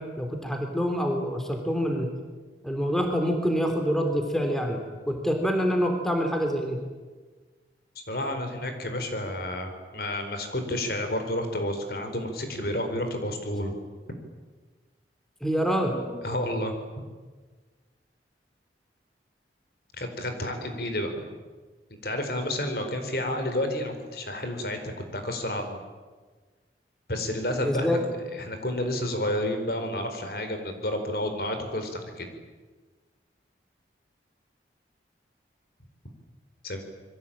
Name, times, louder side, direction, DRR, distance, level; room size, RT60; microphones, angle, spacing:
voice 1, 0.0-2.1 2.6-6.8 15.4-16.3 27.6-28.0, equal, ahead, 4 dB, 3.4 m, -26 dB
voice 2, 8.1-13.7 16.2-16.7 20.0-21.1 22.0-25.8 27.1-28.0 28.3-32.3 36.6-36.8, left 1 dB, 55° left, 6 dB, 4.4 m, -30 dB
27.5 x 22.5 x 8.9 m, 1.4 s
head